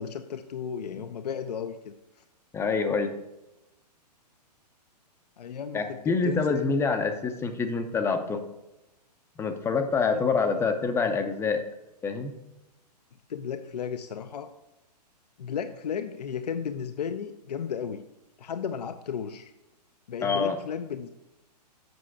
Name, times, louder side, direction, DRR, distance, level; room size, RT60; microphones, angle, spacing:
voice 1, 0.0-1.9 5.4-6.8 10.4-10.7 13.3-14.5 15.4-18.0 18.4-19.5 20.1-21.1, left 7 dB, 70° left, 8 dB, 0.5 m, -34 dB
voice 2, 2.5-3.2 5.7-8.4 9.4-11.6 12.0-12.3 20.2-20.6, left 4 dB, 10° left, 6 dB, 0.6 m, -26 dB
7.8 x 5.5 x 4.7 m, 0.95 s
figure-of-eight pair, 120°, 21 cm